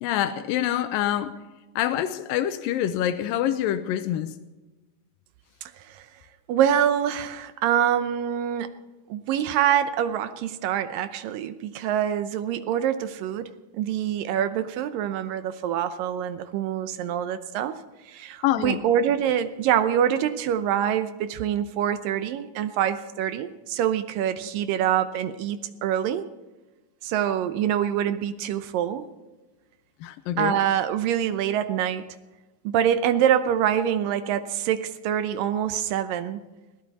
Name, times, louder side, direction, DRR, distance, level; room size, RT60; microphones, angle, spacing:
voice 1, 0.0-1.3 1.8-4.3 18.4-18.8 30.0-30.6, left 11 dB, 80° left, 2.4 m, -26 dB
voice 2, 5.6-6.0 6.5-8.7 9.1-13.5 13.7-17.8 18.1-26.2 27.0-29.1 30.4-32.1 32.6-36.4, right 10 dB, 75° right, 2.4 m, -25 dB
21.5 x 15.5 x 4.1 m
omnidirectional pair, 4.2 m